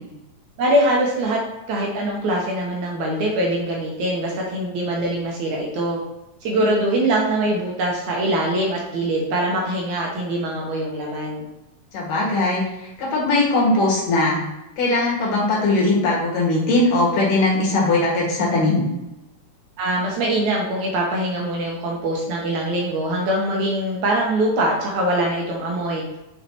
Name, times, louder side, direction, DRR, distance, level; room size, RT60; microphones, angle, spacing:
voice 1, 0.6-1.4 1.7-6.0 6.4-11.4 19.8-26.0, right 1 dB, 70° right, -1 dB, 2.0 m, -23 dB
voice 2, 11.9-12.6 13.0-14.4 14.8-18.9, left 2 dB, 70° left, -4 dB, 3.3 m, -19 dB
6.3 x 5.7 x 2.9 m, 0.98 s
omnidirectional pair, 3.9 m